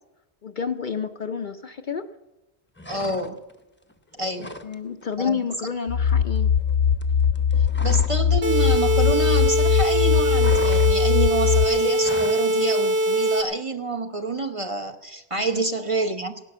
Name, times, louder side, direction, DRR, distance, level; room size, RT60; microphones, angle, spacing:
voice 1, 0.4-2.1 4.6-6.5 15.4-15.6, left 6 dB, 50° left, 8 dB, 0.7 m, -30 dB
sound 1, 2.8-3.6 3.9-4.7 5.0-5.2 5.5-8.3 8.5-9.6 9.9-12.5, left 1 dB, 10° left, 0.7 m, -38 dB
voice 2, 2.9-3.4 4.2-4.5 5.2-5.4 7.8-16.4, right 2 dB, 30° right, 6 dB, 0.9 m, -28 dB
robot heart, 5.9-11.6, left 7 dB, 75° left, 1.3 m, -21 dB
sound 2, 8.4-13.4, equal, 60° right, 1.8 m, -22 dB
17.0 x 11.0 x 6.8 m, 1.0 s
omnidirectional pair, 1.2 m